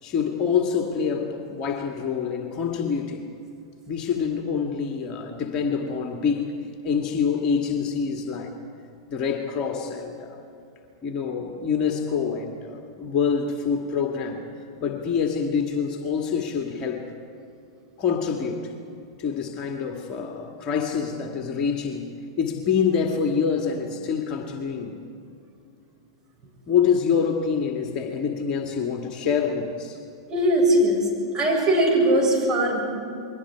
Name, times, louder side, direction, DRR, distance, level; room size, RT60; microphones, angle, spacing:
voice 1, 0.0-3.3 3.9-6.5 6.8-8.5 9.1-10.4 11.0-14.4 14.8-17.1 18.0-18.7 19.2-22.1 22.4-25.0 26.7-30.0, left 6 dB, 35° left, 2 dB, 2.0 m, -26 dB
voice 2, 30.3-31.0 31.3-32.8, right 1 dB, 25° right, -2 dB, 7.6 m, -20 dB
29.0 x 22.0 x 4.8 m, 2.6 s
figure-of-eight pair, 95°, 2 cm